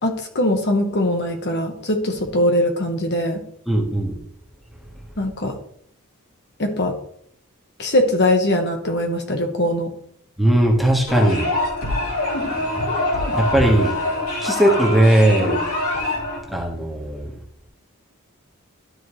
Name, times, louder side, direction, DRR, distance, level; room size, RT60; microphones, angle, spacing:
voice 1, 0.0-3.4 5.2-5.5 6.6-6.9 7.8-9.9, left 1 dB, 50° left, 4 dB, 1.2 m, -21 dB
voice 2, 3.7-4.2 10.4-11.5 13.4-13.9 14.4-15.6 16.5-17.3, right 1 dB, ahead, 0 dB, 1.4 m, -18 dB
sound 1, 11.1-16.4, left 1 dB, 85° left, 3.2 m, -24 dB
12.5 x 4.6 x 3.2 m, 0.66 s
head